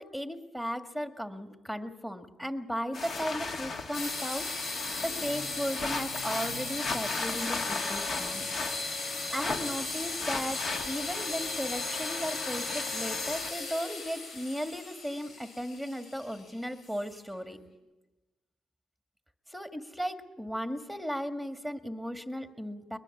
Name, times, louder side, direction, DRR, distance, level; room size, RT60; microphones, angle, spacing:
voice 1, 0.0-4.8 5.0-8.5 9.3-17.6 19.5-23.0, equal, 5° left, 6 dB, 1.9 m, -36 dB
sound 1, 2.9-13.5, left 3 dB, 50° left, 2.3 m, -37 dB
sound 2, 3.9-17.3, left 3 dB, 70° left, 7.6 m, -36 dB
22.0 x 21.5 x 7.3 m, 1.1 s
cardioid pair, 90°, 0 cm